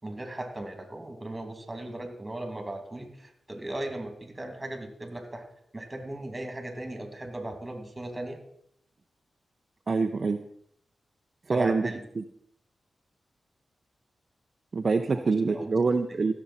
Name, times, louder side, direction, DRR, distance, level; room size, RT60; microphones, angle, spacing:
voice 1, 0.0-5.5 5.7-8.4 11.5-12.0 15.1-15.7 16.1-16.3, right 1 dB, 25° right, 5 dB, 2.6 m, -37 dB
voice 2, 9.9-10.4 11.5-11.8 12.2-12.3 14.7-16.3, right 4 dB, 55° right, 6 dB, 0.6 m, -25 dB
15.5 x 7.1 x 4.3 m, 0.69 s
cardioid pair, 45°, 0 cm